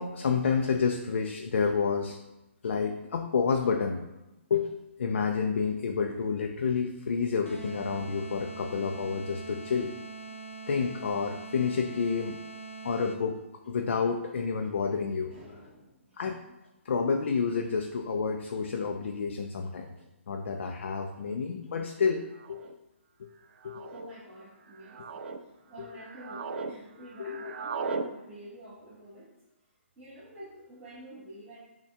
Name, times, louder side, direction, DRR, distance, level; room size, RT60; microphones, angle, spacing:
voice 1, 0.0-2.2 2.6-4.0 4.5-4.7 5.0-9.9 10.7-12.4 12.8-13.4 13.7-15.3 16.2-16.4 16.9-19.9 20.3-22.2 22.5-22.6 23.6-23.9 27.2-27.4, left 5 dB, 65° left, 4 dB, 0.4 m, -29 dB
sound 1, 7.4-13.4, right 3 dB, 85° left, 0.8 m, -43 dB
voice 2, 15.3-16.2 23.8-25.0 25.4-29.4 30.0-31.6, right 1 dB, 10° right, -13 dB, 1.4 m, -48 dB
sound 2, 20.0-20.1 21.1-21.4 22.3-22.7 23.6-24.1 24.7-25.4 25.9-26.7 27.0-28.1, right 4 dB, 55° right, 0.4 m, -37 dB
5.7 x 2.3 x 3.5 m, 0.98 s
figure-of-eight pair, 140°, 7 cm